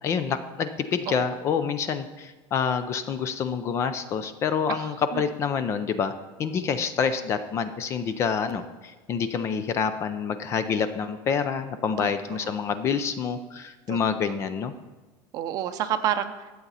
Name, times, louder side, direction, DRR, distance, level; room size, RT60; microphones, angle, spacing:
voice 1, 0.0-6.1 6.4-14.7, left 6 dB, 25° left, 11 dB, 0.4 m, -27 dB
voice 2, 1.1-1.4 4.7-5.2 12.0-12.6 13.9-14.0 14.3-14.5 15.3-16.5, right 10 dB, 35° right, 9 dB, 0.6 m, -31 dB
11.5 x 7.9 x 4.1 m, 1.3 s
cardioid pair, 170°, 10 cm